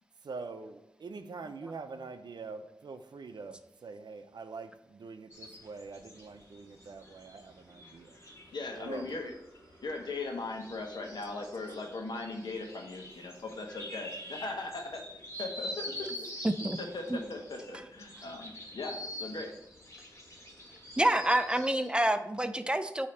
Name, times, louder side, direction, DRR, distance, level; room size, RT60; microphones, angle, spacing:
voice 1, 0.2-8.2 8.7-9.1 15.9-16.1 16.8-16.9, right 4 dB, 85° right, 8 dB, 0.5 m, -44 dB
sound 1, 5.3-21.9, left 1 dB, 40° left, 1.8 m, -46 dB
voice 2, 8.5-9.3 9.8-15.0 15.4-16.2 16.8-19.5, left 3 dB, 85° left, 2 dB, 1.0 m, -39 dB
voice 3, 16.4-16.8 17.1-17.2 21.0-23.1, right 1 dB, 15° right, 9 dB, 0.5 m, -28 dB
8.4 x 2.8 x 4.3 m, 0.83 s
wide cardioid pair, 65°, 7 cm